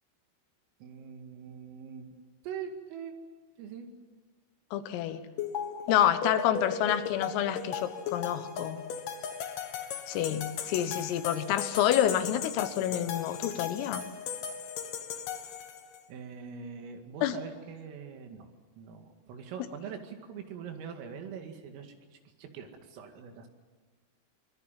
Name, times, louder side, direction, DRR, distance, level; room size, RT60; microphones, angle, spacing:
voice 1, 0.8-2.1 2.4-3.1 3.6-3.9 16.1-18.5 18.8-21.9 22.4-23.5, right 7 dB, 80° right, 5 dB, 4.8 m, -43 dB
voice 2, 4.7-5.3 5.9-8.9 10.1-14.0 17.2-17.4, left 11 dB, 85° left, 10 dB, 3.9 m, -28 dB
sound 1, 5.4-16.0, left 7 dB, 65° left, 2.3 m, -37 dB
24.5 x 22.5 x 7.5 m, 1.3 s
omnidirectional pair, 5.9 m